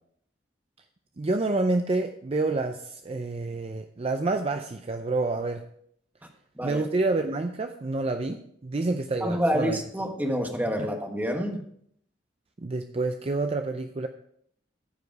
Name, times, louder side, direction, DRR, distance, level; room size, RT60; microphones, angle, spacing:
voice 1, 1.2-5.6 6.6-9.8 10.8-10.9 12.6-14.1, right 2 dB, 35° right, 6 dB, 0.5 m, -28 dB
voice 2, 9.2-11.6, equal, 10° right, 3 dB, 1.3 m, -28 dB
14.0 x 5.1 x 4.7 m, 0.68 s
head